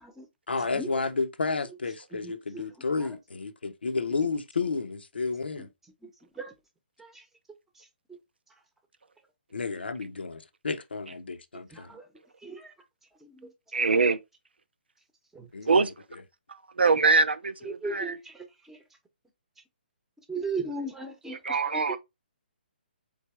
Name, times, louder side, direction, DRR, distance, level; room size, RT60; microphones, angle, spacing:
voice 1, 0.5-5.7 9.5-11.9 15.5-15.9, left 4 dB, 80° left, 0.7 m, -31 dB
voice 2, 11.7-12.0 12.4-12.7 13.2-13.5 15.3-15.5 17.6-18.8 20.3-22.0, right 3 dB, 5° right, 0.9 m, -36 dB
voice 3, 13.7-14.2 15.7-15.9 16.8-18.2 21.4-22.0, right 4 dB, 80° right, 0.6 m, -23 dB
4.0 x 3.4 x 3.2 m
figure-of-eight pair, 140°, 6 cm